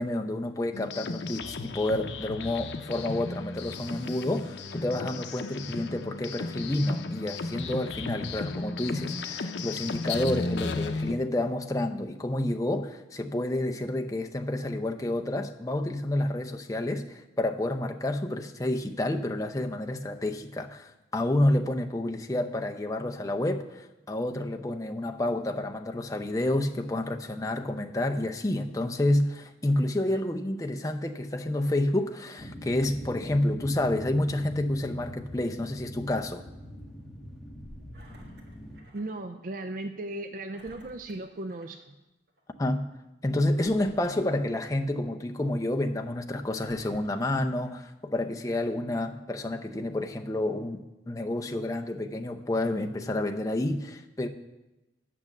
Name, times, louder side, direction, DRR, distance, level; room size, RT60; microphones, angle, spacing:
voice 1, 0.0-36.4 42.6-42.9 43.2-54.3, left 1 dB, 20° left, 4 dB, 0.6 m, -29 dB
sound 1, 0.7-11.1, left 3 dB, 85° left, 0.6 m, -35 dB
sound 2, 32.4-38.8, equal, ahead, 1.5 m, -43 dB
Engine, 37.9-39.2 39.6-39.7 40.5-41.9 42.3-42.4 43.5-45.0 45.6-45.7 46.5-47.9 48.6-48.7, right 1 dB, 70° right, 1.7 m, -55 dB
voice 2, 38.9-41.8, right 2 dB, 50° right, 7 dB, 0.4 m, -36 dB
8.6 x 6.6 x 7.2 m, 1.0 s
head